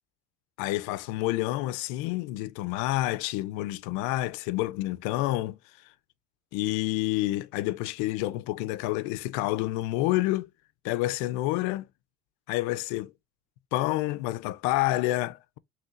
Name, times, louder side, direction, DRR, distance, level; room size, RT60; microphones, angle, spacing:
voice 1, 0.6-5.6 6.5-10.5 10.8-11.9 12.5-13.1 13.7-15.6, left 17 dB, 65° left, 0.5 m, -28 dB
5.5 x 3.2 x 2.4 m
cardioid pair, 165°, 33 cm